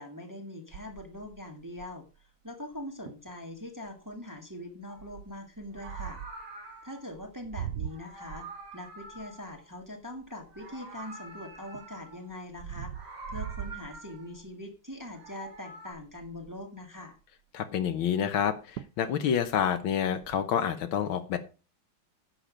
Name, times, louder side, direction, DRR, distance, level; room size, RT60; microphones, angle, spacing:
voice 1, 0.0-2.0 2.4-6.2 6.8-8.5 8.7-12.9 13.3-17.2, left 1 dB, 10° right, 2 dB, 1.5 m, -42 dB
sound 1, 0.7-2.2 2.7-2.8 3.1-3.3 3.9-4.2 5.0-6.5 7.1-11.0 11.5-14.5 15.0-15.3 15.6-15.7 15.9-16.7 18.3-18.4 18.8-19.1 19.4-20.4, right 10 dB, 70° right, 1.0 m, -42 dB
Meow, 4.9-5.1 5.7-7.1 7.8-10.1 10.4-12.3 12.8-14.4 15.0-15.9, right 2 dB, 90° right, 3.3 m, -47 dB
voice 2, 17.5-21.4, left 8 dB, 75° left, 9 dB, 1.8 m, -28 dB
10.0 x 6.6 x 5.1 m, 0.33 s
omnidirectional pair, 2.3 m